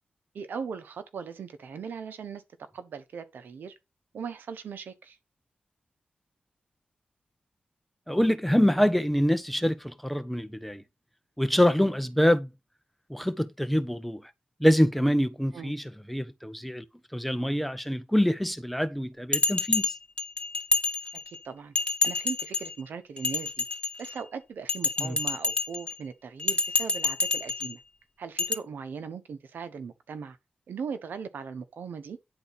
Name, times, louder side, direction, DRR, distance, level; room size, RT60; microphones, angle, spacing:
voice 1, 0.3-2.4 2.7-3.7 4.1-5.2 15.5-15.8 21.3-21.7 22.0-23.6 24.0-27.8 28.2-30.4 30.7-32.2, right 6 dB, 90° right, 1.2 m, -39 dB
voice 2, 8.1-10.8 11.4-12.5 13.1-14.2 14.6-16.8 17.1-19.9 25.0-25.2, equal, 5° left, 1.1 m, -25 dB
Bell, 19.3-21.4 21.7-22.7 23.2-24.2 24.7-25.9 26.4-27.7 28.4-28.5, left 3 dB, 30° left, 1.7 m, -28 dB
10.5 x 4.2 x 5.8 m
cardioid pair, 55°, 3 cm